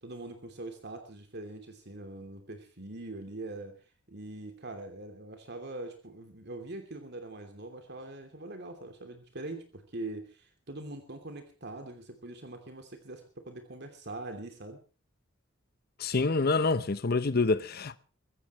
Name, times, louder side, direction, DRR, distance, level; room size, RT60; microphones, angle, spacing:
voice 1, 0.0-3.8 4.1-14.8, right 2 dB, 55° right, 3.0 m, -43 dB
voice 2, 16.0-18.0, left 3 dB, 50° left, 0.8 m, -27 dB
23.5 x 16.0 x 3.1 m
head